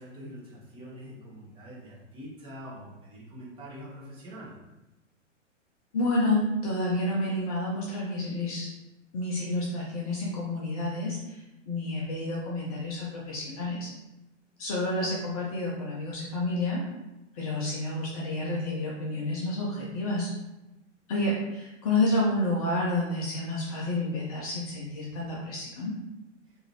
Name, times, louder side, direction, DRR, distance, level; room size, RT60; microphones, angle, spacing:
voice 1, 0.0-4.5, equal, 15° right, -6 dB, 0.8 m, -44 dB
voice 2, 5.9-8.7 9.1-13.9 14.6-16.8 17.3-20.3 21.1-25.9, left 2 dB, 30° left, -4 dB, 0.5 m, -29 dB
2.7 x 2.4 x 3.0 m, 0.98 s
figure-of-eight pair, 105°, 37 cm